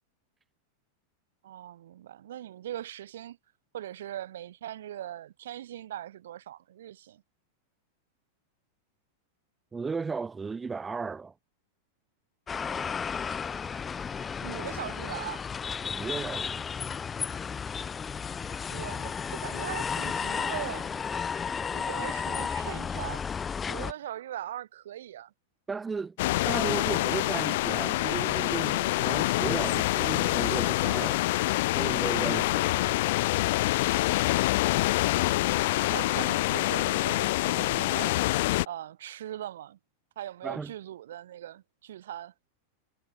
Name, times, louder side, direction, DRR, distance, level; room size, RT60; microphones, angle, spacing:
voice 1, 1.4-3.4 3.7-7.2 14.4-15.4 18.7-20.9 21.7-23.2 23.7-25.3 35.1-39.8 40.2-42.3, right 12 dB, 80° right, 2.4 m, -40 dB
voice 2, 9.7-11.3 15.9-16.6 25.7-26.2 26.4-31.4 31.7-33.0 40.4-40.7, right 4 dB, 10° right, 1.3 m, -35 dB
sound 1, 12.5-23.9, left 6 dB, 10° left, 0.5 m, -33 dB
sound 2, 26.2-38.7, left 18 dB, 50° left, 1.3 m, -26 dB
supercardioid pair, 175°, 0 cm